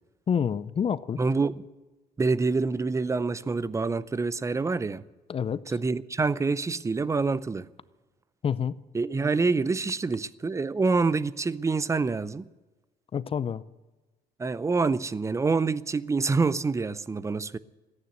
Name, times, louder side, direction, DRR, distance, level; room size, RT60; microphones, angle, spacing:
voice 1, 0.3-1.2 5.3-5.6 8.4-8.8 13.1-13.6, left 7 dB, 35° left, 0.5 m, -27 dB
voice 2, 1.2-1.6 2.2-5.0 5.7-7.7 8.9-12.5 14.4-17.6, right 4 dB, 15° right, 0.5 m, -26 dB
14.5 x 9.6 x 9.4 m
cardioid pair, 110°, 17 cm